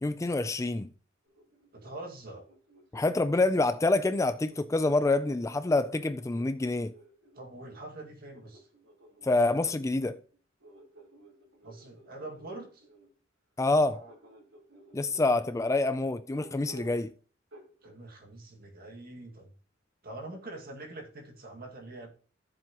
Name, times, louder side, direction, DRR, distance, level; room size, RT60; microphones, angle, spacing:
voice 1, 0.0-0.9 2.9-6.9 9.2-10.2 13.6-14.0 14.9-17.1, left 2 dB, 15° left, 0.4 m, -27 dB
sound 1, 1.3-3.7 4.5-7.5 8.3-13.1 13.8-15.6 16.3-17.1 17.5-18.0, right 2 dB, 75° right, 3.8 m, -55 dB
voice 2, 1.7-2.5 7.3-8.7 11.6-12.9 17.8-19.5 20.0-22.1, right 2 dB, 50° right, 2.0 m, -44 dB
14.0 x 7.4 x 3.0 m
head